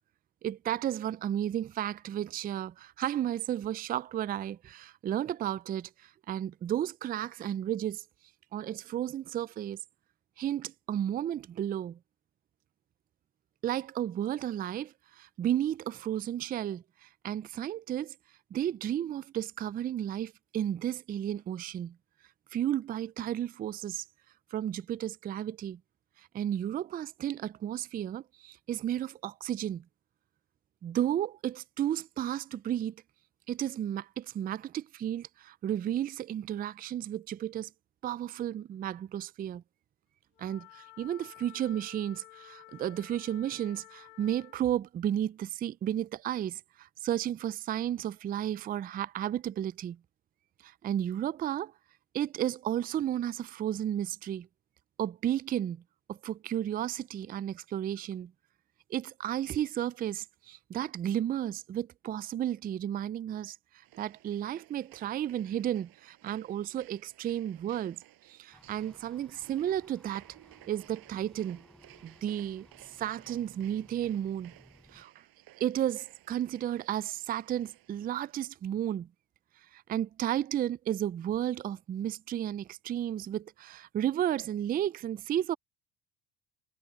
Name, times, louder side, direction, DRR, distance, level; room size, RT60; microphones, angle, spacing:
voice 1, 0.4-8.0 8.5-9.8 10.4-12.0 13.6-18.1 18.5-22.0 22.5-24.0 24.5-25.8 26.3-29.8 30.8-33.0 33.5-37.7 38.0-39.6 40.4-50.0 50.6-51.7 52.1-54.5 55.0-55.8 56.1-58.3 58.9-63.6 64.0-68.0 68.3-70.2 70.7-71.6 72.0-72.7 73.0-74.5 74.9-75.2 75.6-79.1 79.7-85.6, right 11 dB, 25° right, 0.4 m, -33 dB
Wind instrument woodwind instrument, 40.3-44.6, left 22 dB, 85° left, 2.6 m, -53 dB
sound 1, 63.8-78.5, right 16 dB, 65° right, 7.5 m, -58 dB
sound 2, 68.5-75.0, equal, ahead, 0.9 m, -60 dB
supercardioid pair, 95°, 39 cm